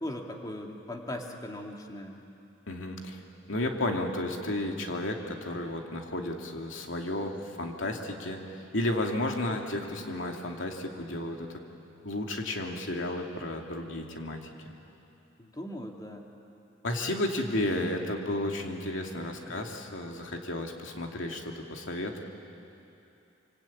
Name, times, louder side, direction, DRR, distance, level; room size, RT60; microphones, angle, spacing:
voice 1, 0.0-2.2 9.3-9.6 15.4-16.2 19.5-19.7, left 1 dB, 20° left, 1 dB, 2.4 m, -39 dB
voice 2, 2.7-3.2 3.5-11.5 12.0-14.4 16.8-22.2, left 1 dB, 75° left, 2 dB, 2.6 m, -33 dB
25.5 x 25.0 x 8.8 m, 2.8 s
head